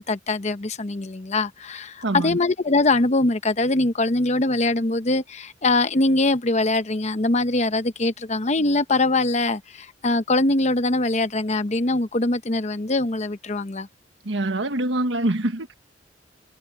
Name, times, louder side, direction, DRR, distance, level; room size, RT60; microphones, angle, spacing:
voice 1, 0.0-13.9, left 2 dB, 40° left, 0.9 m, -22 dB
voice 2, 2.0-2.4 14.2-15.7, right 1 dB, 90° right, 1.5 m, -24 dB
head